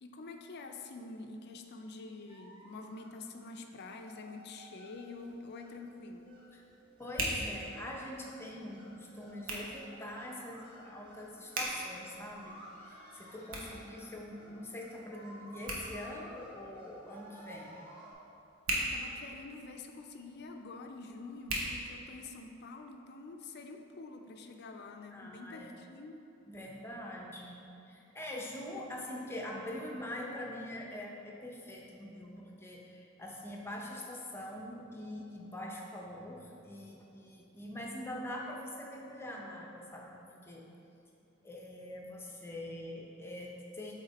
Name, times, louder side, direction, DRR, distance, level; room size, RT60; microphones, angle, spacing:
voice 1, 0.0-6.3 18.7-26.3, left 3 dB, 50° left, 5 dB, 0.4 m, -47 dB
sound 1, 2.3-18.1, equal, 25° right, 1.1 m, -55 dB
Hands, 4.9-22.6, right 1 dB, 80° right, 1.1 m, -43 dB
voice 2, 7.0-17.8 25.1-25.7 26.5-27.6 27.8-40.2 40.4-40.6 41.4-43.9, left 1 dB, 10° left, -2 dB, 0.6 m, -44 dB
7.9 x 3.6 x 4.1 m, 2.8 s
head